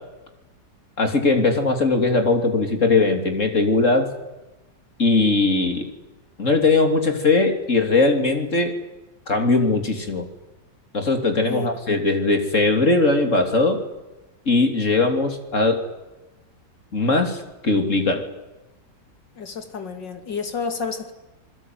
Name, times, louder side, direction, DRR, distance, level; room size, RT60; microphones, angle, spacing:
voice 1, 1.0-4.1 5.0-5.9 6.4-8.7 9.3-10.3 10.9-13.8 14.4-15.9 16.9-18.3, left 3 dB, 40° left, 5 dB, 3.5 m, -20 dB
voice 2, 19.4-21.1, left 5 dB, 75° left, 7 dB, 3.3 m, -30 dB
28.0 x 21.0 x 9.4 m, 1.0 s
omnidirectional pair, 1.9 m